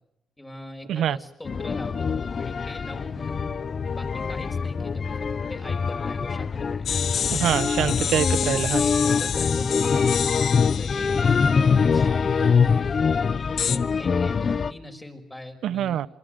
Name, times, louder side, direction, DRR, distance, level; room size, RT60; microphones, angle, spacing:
voice 1, 0.4-2.1 2.4-3.5 3.9-6.9 7.9-8.2 8.8-10.2 10.8-12.6 12.9-13.0 13.6-16.0, left 1 dB, 15° left, 5.7 m, -41 dB
sound 1, 1.4-14.7, left 5 dB, 45° left, 0.9 m, -24 dB
sound 2, 6.9-12.6 13.6-13.8, left 8 dB, 65° left, 1.1 m, -30 dB
voice 2, 7.4-8.8 15.6-16.1, right 10 dB, 80° right, 0.8 m, -24 dB
27.0 x 24.0 x 6.6 m
cardioid pair, 95°, 0 cm